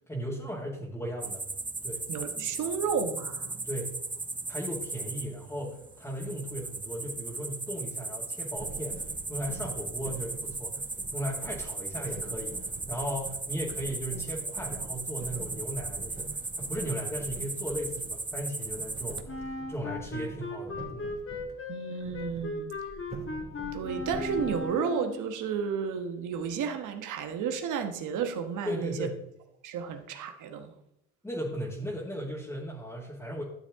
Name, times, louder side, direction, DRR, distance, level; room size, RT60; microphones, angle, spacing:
voice 1, 0.1-1.4 1.8-2.1 3.6-4.0 4.5-10.9 11.1-21.1 28.7-29.2 31.2-33.4, equal, 10° left, 2.0 m, -37 dB
sound 1, 1.2-19.2, right 3 dB, 15° right, 0.8 m, -37 dB
voice 2, 2.1-3.6 21.7-22.7 23.7-29.1 29.6-30.7, right 6 dB, 80° right, 1.2 m, -32 dB
sound 2, 8.6-21.5 22.0-24.6, right 3 dB, 30° right, 3.0 m, -45 dB
Wind instrument woodwind instrument, 19.3-25.3, left 3 dB, 45° left, 1.6 m, -37 dB
12.0 x 7.1 x 3.6 m
cardioid pair, 90°, 30 cm